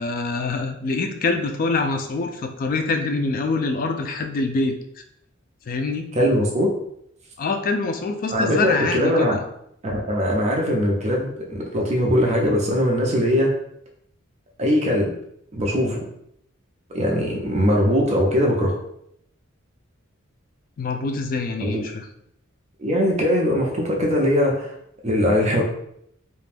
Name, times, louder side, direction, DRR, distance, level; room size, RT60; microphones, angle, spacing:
voice 1, 0.0-4.7 5.7-6.0 7.4-9.4 20.8-22.1, left 3 dB, 40° left, 5 dB, 0.3 m, -25 dB
voice 2, 6.1-6.7 8.3-9.4 9.8-13.5 14.6-15.1 15.5-16.0 16.9-18.7 21.6-21.8 22.8-24.7 25.0-25.6, equal, 30° right, 0 dB, 0.5 m, -21 dB
2.5 x 2.1 x 3.3 m, 0.72 s
head